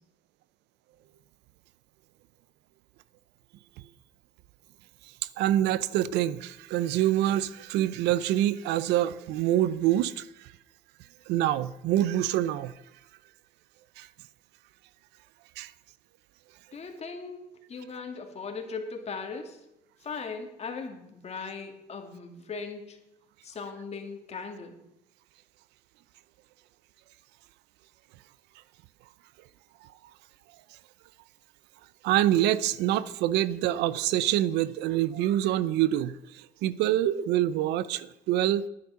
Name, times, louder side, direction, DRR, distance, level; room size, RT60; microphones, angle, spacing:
voice 1, 5.4-10.5 11.3-12.7 14.0-14.1 15.6-15.7 32.0-38.7, right 13 dB, 85° right, 0.6 m, -26 dB
voice 2, 16.7-19.6 20.0-23.0 23.4-24.8, left 4 dB, 40° left, 2.3 m, -38 dB
11.0 x 9.5 x 5.7 m
cardioid pair, 110°, 17 cm